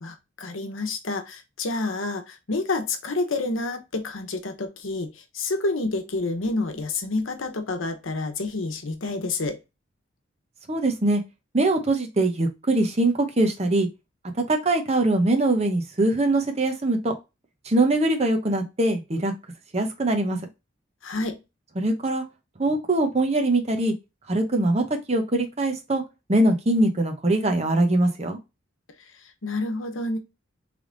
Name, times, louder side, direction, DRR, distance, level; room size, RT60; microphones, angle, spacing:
voice 1, 0.0-9.6 21.0-21.4 29.4-30.2, left 2 dB, 85° left, 0.9 m, -29 dB
voice 2, 10.7-11.2 11.5-13.9 14.5-17.1 17.6-19.3 19.7-20.4 21.8-22.2 22.6-23.9 24.3-26.0 26.3-28.4, right 2 dB, 30° right, 0.9 m, -22 dB
3.4 x 3.4 x 3.8 m
head